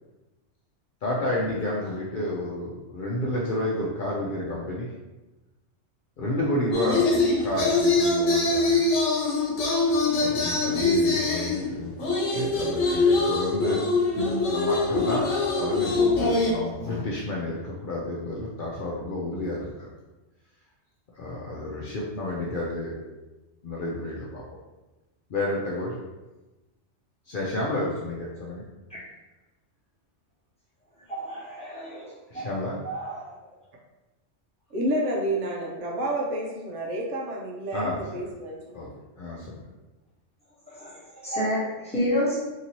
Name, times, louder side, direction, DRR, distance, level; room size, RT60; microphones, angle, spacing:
voice 1, 1.0-4.9 6.2-7.1 7.4-8.9 10.2-13.8 14.5-15.3 15.6-19.9 21.2-23.0 23.6-24.4 25.3-26.0 27.3-28.6 32.3-32.8 37.7-38.2 38.7-38.9 39.2-39.6, left 1 dB, 60° left, -4 dB, 0.6 m, -30 dB
sound 1, 6.7-11.7 12.0-16.5, left 3 dB, 85° left, 1.1 m, -23 dB
voice 2, 31.1-32.5 32.8-33.3 40.7-42.4, equal, 5° left, -9 dB, 1.0 m, -30 dB
voice 3, 34.7-38.8, right 1 dB, 80° right, -2 dB, 1.0 m, -29 dB
2.9 x 2.7 x 2.8 m, 1.1 s
omnidirectional pair, 1.2 m